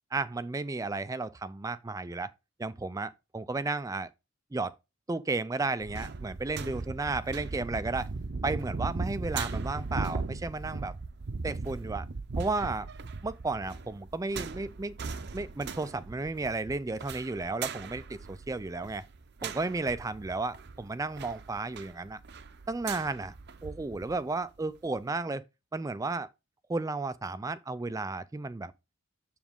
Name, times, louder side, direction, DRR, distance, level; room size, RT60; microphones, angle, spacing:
voice 1, 0.1-2.3 2.6-4.1 4.5-4.7 5.1-8.1 8.4-10.9 11.4-12.1 12.4-12.9 13.2-14.9 15.3-19.1 19.4-22.2 22.7-23.3 23.6-25.4 25.7-26.3 26.7-28.7, right 3 dB, 15° right, 0.3 m, -33 dB
sound 1, 5.8-24.2 24.6-24.7, right 4 dB, 50° right, 0.6 m, -38 dB
7.2 x 7.1 x 3.6 m
head